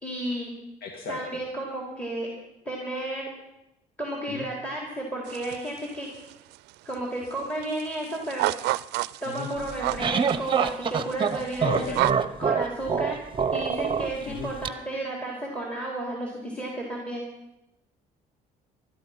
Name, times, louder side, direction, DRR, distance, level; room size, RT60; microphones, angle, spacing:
voice 1, 0.0-0.5 1.1-2.3 2.7-3.3 4.0-6.1 6.9-8.5 9.2-11.8 12.4-13.2 13.5-17.2, right 1 dB, 5° left, -1 dB, 3.6 m, -32 dB
voice 2, 0.8-1.2 4.3-4.5 9.3-9.5 11.6-12.2 14.3-14.5, left 3 dB, 60° left, 2 dB, 2.2 m, -34 dB
sound 1, 5.3-5.9 6.1-6.9 7.2-7.3 7.6-12.1, right 18 dB, 85° right, 0.4 m, -29 dB
sound 2, 9.6-14.7, right 6 dB, 30° right, 0.9 m, -26 dB
19.5 x 13.0 x 5.8 m, 0.94 s
cardioid pair, 110°, 17 cm